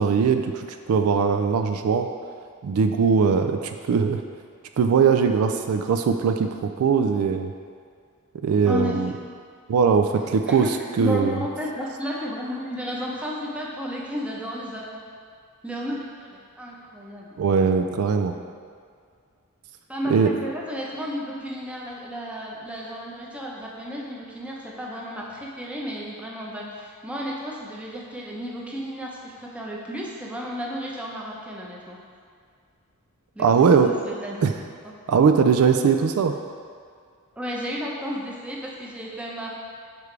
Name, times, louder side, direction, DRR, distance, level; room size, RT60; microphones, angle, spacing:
voice 1, 0.0-2.1 2.6-4.2 4.8-7.5 8.4-9.1 9.7-10.7 11.0-11.4 17.4-18.3 20.1-20.3 33.4-33.9 34.4-34.5 35.1-36.3, right 6 dB, 75° right, 7 dB, 0.3 m, -20 dB
voice 2, 8.7-9.2 10.5-10.7 11.0-15.0 15.6-17.3 19.9-32.0 33.4-33.5 33.8-34.5 35.8-35.9 37.4-39.5, equal, 5° right, -4 dB, 0.8 m, -33 dB
6.8 x 4.7 x 3.3 m, 2.1 s
head